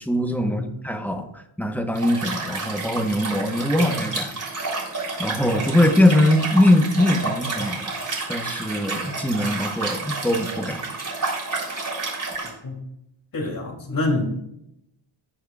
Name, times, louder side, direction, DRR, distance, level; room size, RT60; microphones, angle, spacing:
voice 1, 0.0-4.3 5.2-8.0 8.3-10.8, left 1 dB, 5° left, 5 dB, 1.1 m, -21 dB
Liquid, 1.9-12.5, right 3 dB, 35° right, 3.7 m, -30 dB
voice 2, 13.3-14.2, left 2 dB, 45° left, 0 dB, 3.0 m, -26 dB
18.0 x 6.5 x 2.4 m, 0.80 s
wide cardioid pair, 115°, 49 cm